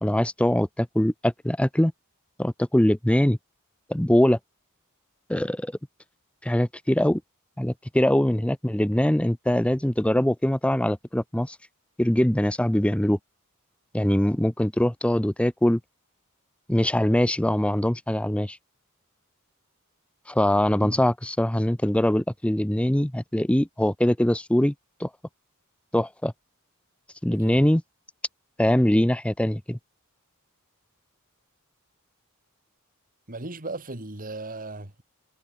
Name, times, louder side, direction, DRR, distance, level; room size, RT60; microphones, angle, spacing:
voice 1, 0.0-1.9 2.4-3.4 3.9-4.4 5.3-5.7 6.4-7.2 7.6-11.6 12.0-13.2 13.9-15.8 16.7-18.6 20.3-24.7 25.0-25.1 25.9-26.3 27.2-27.8 28.6-29.8, left 1 dB, 5° left, 0.6 m, -22 dB
voice 2, 27.3-27.6 33.3-35.0, right 2 dB, 40° right, 3.1 m, -37 dB
head